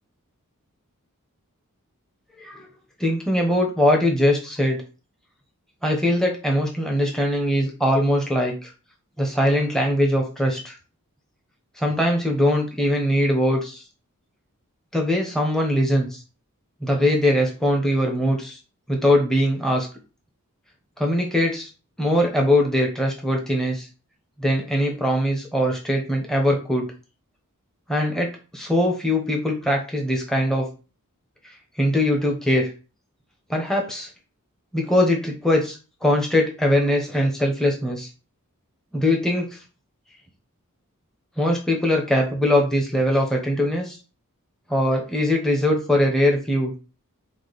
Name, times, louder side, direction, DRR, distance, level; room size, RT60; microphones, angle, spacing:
voice 1, 3.0-4.8 5.8-8.7 9.2-10.8 11.8-13.8 14.9-16.2 16.8-18.6 18.9-19.9 21.0-21.7 22.0-23.9 24.4-26.9 27.9-30.7 31.4-32.7 33.5-34.1 34.7-38.1 38.9-39.6 41.4-44.0 44.7-46.7, left 1 dB, ahead, 0 dB, 0.7 m, -21 dB
4.9 x 2.1 x 3.9 m, 0.33 s
head